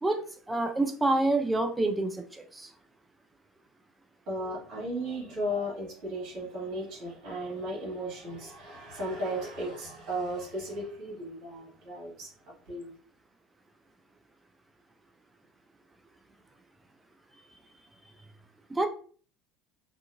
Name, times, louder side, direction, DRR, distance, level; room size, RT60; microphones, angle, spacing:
voice 1, 0.0-2.7 18.7-18.9, right 2 dB, 15° right, 5 dB, 0.5 m, -28 dB
voice 2, 4.3-12.3 12.7-12.9, equal, 50° right, -4 dB, 1.4 m, -35 dB
2.7 x 2.3 x 2.5 m, 0.43 s
hypercardioid pair, 70°, 0 cm